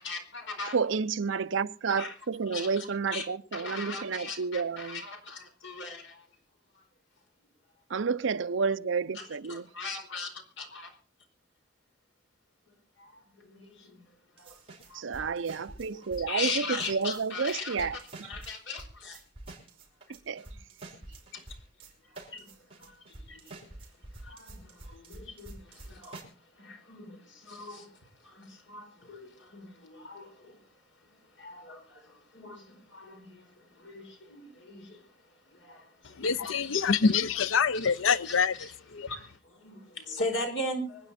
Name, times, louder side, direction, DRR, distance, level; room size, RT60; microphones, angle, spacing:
voice 1, 0.0-0.8 2.0-2.1 2.5-3.2 3.5-6.2 6.7-6.8 9.1-10.9 13.0-14.0 14.4-14.6 14.9-15.2 15.8-16.0 16.3-17.9 18.3-19.2 21.3-21.4 22.3-22.5 22.8-23.7 24.2-26.3 26.6-27.9 28.2-30.6 31.4-35.0 35.5-37.1 37.8-38.7 39.0-41.1, left 2 dB, 75° left, 4.6 m, -39 dB
voice 2, 0.7-5.0 7.9-9.7 14.9-18.3 20.3-20.4, right 5 dB, 75° right, 0.6 m, -30 dB
sound 1, 14.4-16.5 16.8-26.2, right 2 dB, 30° right, 5.3 m, -47 dB
voice 3, 36.2-39.1, left 5 dB, 90° left, 0.6 m, -26 dB
25.5 x 9.8 x 4.3 m
head